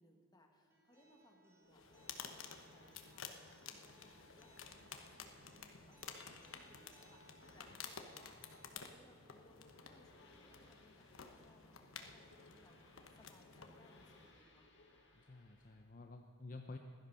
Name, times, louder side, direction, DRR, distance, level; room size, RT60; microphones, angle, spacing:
voice 1, 0.0-8.4 8.7-14.7, left 1 dB, 20° left, 1 dB, 1.8 m, -68 dB
Acoustic guitar, 0.7-8.7, right 1 dB, 15° right, 3.1 m, -68 dB
sound 1, 1.6-15.8, left 2 dB, 60° left, 2.2 m, -67 dB
sound 2, 1.7-14.4, left 6 dB, 90° left, 1.1 m, -53 dB
voice 2, 15.1-16.8, left 3 dB, 40° left, 4 dB, 0.7 m, -51 dB
16.0 x 12.0 x 5.6 m, 2.4 s
head